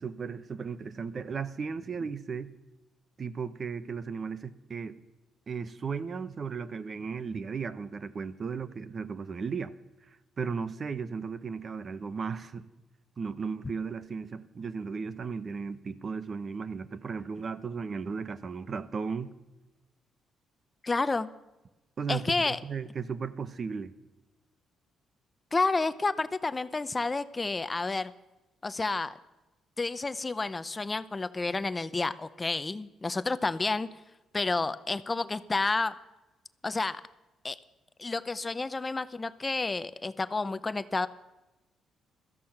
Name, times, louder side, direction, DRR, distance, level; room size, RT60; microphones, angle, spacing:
voice 1, 0.0-2.5 3.2-5.0 5.5-9.7 10.4-12.6 13.2-19.3 22.0-23.9, right 5 dB, 45° right, 0.9 m, -35 dB
voice 2, 20.8-21.3 22.1-22.6 25.5-28.1 28.6-29.2 29.8-33.9 34.3-35.9 36.6-37.0 37.4-37.6 38.0-41.1, left 3 dB, 25° left, 0.6 m, -30 dB
16.5 x 13.5 x 5.8 m
cardioid pair, 90°, 0 cm